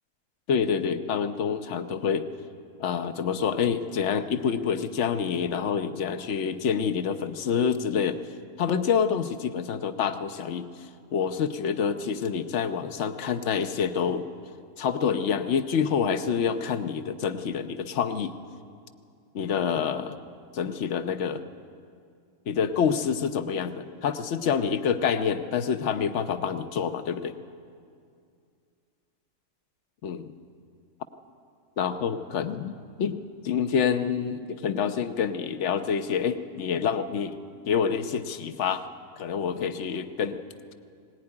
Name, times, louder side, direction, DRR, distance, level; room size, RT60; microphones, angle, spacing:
voice 1, 0.5-2.3 2.8-8.2 8.6-10.7 11.1-14.3 14.8-18.4 19.3-20.2 20.5-21.4 22.5-27.4 30.0-30.3 31.8-37.4 37.7-38.8 39.2-40.4, left 7 dB, 55° left, 9 dB, 1.1 m, -27 dB
19.0 x 19.0 x 9.8 m, 2.3 s
omnidirectional pair, 1.7 m